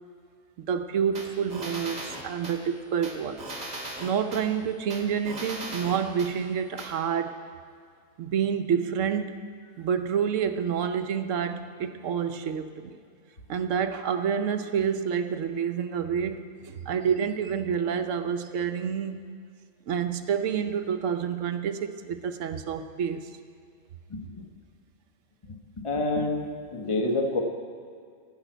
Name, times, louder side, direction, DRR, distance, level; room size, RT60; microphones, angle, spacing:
voice 1, 0.6-3.5 4.0-7.4 8.2-9.4 9.8-13.0 13.5-19.3 19.9-23.3, right 7 dB, 70° right, 8 dB, 1.0 m, -28 dB
sound 1, 1.2-2.6 3.0-4.4 4.9-6.3 6.8-6.9, right 1 dB, 30° right, 1.7 m, -38 dB
voice 2, 24.1-24.4 25.8-27.4, left 2 dB, 25° left, 3 dB, 1.2 m, -28 dB
14.5 x 6.0 x 9.1 m, 2.2 s
omnidirectional pair, 1.4 m